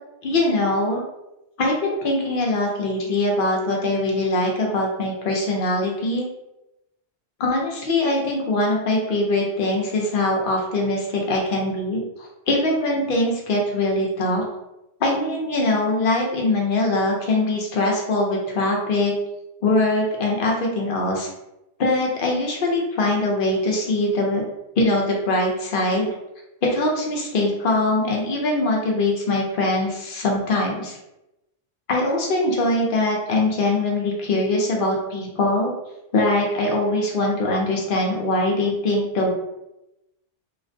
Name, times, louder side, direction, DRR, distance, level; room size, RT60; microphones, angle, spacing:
voice 1, 0.2-1.0 1.6-6.3 7.4-14.4 15.0-19.1 19.6-21.3 21.8-24.4 24.8-26.1 26.6-31.0 31.9-35.7 36.1-39.3, left 2 dB, 55° left, -1 dB, 0.7 m, -22 dB
2.4 x 2.1 x 2.6 m, 0.92 s
omnidirectional pair, 1.2 m